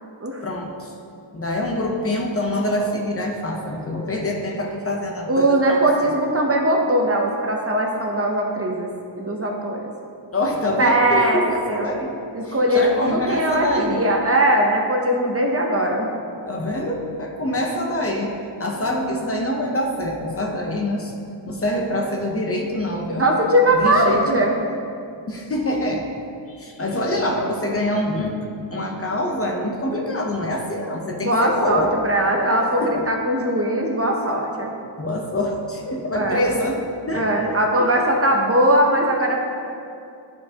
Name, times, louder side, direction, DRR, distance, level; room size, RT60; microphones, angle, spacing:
voice 1, 0.4-0.9 1.3-6.1 10.3-12.2 12.4-14.0 16.5-21.1 21.5-23.3 23.7-24.4 25.3-26.1 26.5-28.4 28.7-31.9 32.8-33.1 35.0-38.0, left 1 dB, 30° left, 1 dB, 0.7 m, -25 dB
voice 2, 5.3-8.9 9.2-9.9 10.8-11.4 11.7-11.9 12.3-16.1 23.2-24.6 31.2-34.7 35.9-36.4 37.1-39.4, right 1 dB, 30° right, 1 dB, 0.6 m, -20 dB
12.0 x 4.5 x 2.8 m, 2.5 s
wide cardioid pair, 155°, 45 cm